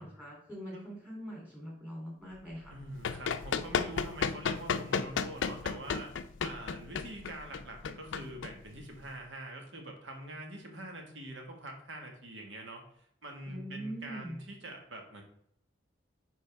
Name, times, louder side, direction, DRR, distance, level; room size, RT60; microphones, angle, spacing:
voice 1, 0.0-2.7 13.5-14.4, equal, 10° right, -4 dB, 3.0 m, -43 dB
Run, 2.7-9.1, left 6 dB, 80° left, 0.4 m, -34 dB
voice 2, 2.7-6.1 6.4-15.2, right 1 dB, 80° right, 2 dB, 1.6 m, -45 dB
9.8 x 3.9 x 3.5 m, 0.71 s
head